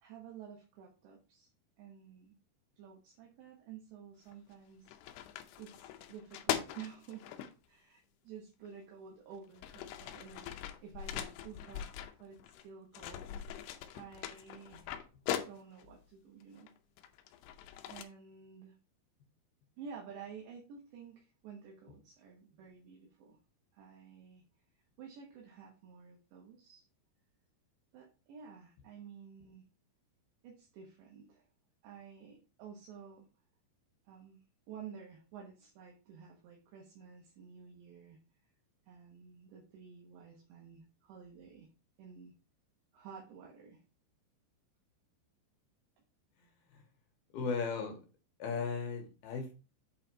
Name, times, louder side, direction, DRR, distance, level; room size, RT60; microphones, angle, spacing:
voice 1, 0.0-1.5 1.8-2.3 2.8-4.9 5.6-7.3 7.7-13.3 13.9-15.0 15.4-16.7 17.9-18.8 19.8-23.4 23.7-24.4 25.0-26.8 27.9-29.7 30.4-31.5 31.8-33.3 34.1-34.4 34.7-38.2 38.9-41.7 42.0-42.3 42.9-43.8, right 7 dB, 70° right, -1 dB, 3.4 m, -52 dB
sound 1, 4.3-4.5 4.9-7.5 8.7-8.8 9.3-12.7 12.9-15.9 16.6-18.0, left 11 dB, 85° left, 2.3 m, -41 dB
voice 2, 46.4-46.8 47.3-48.0 48.4-49.5, left 5 dB, 65° left, 4 dB, 2.8 m, -37 dB
8.4 x 4.2 x 4.5 m, 0.33 s
omnidirectional pair, 5.5 m